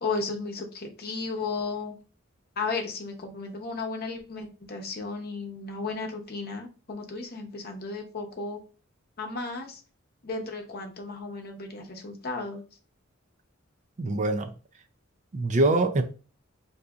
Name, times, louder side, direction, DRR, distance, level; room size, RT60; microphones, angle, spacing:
voice 1, 0.0-2.0 2.6-8.6 9.2-9.8 10.2-12.6, left 3 dB, 50° left, 0.8 m, -34 dB
voice 2, 14.0-14.5 15.3-16.0, right 2 dB, 35° right, 0.4 m, -24 dB
3.9 x 2.7 x 2.3 m
head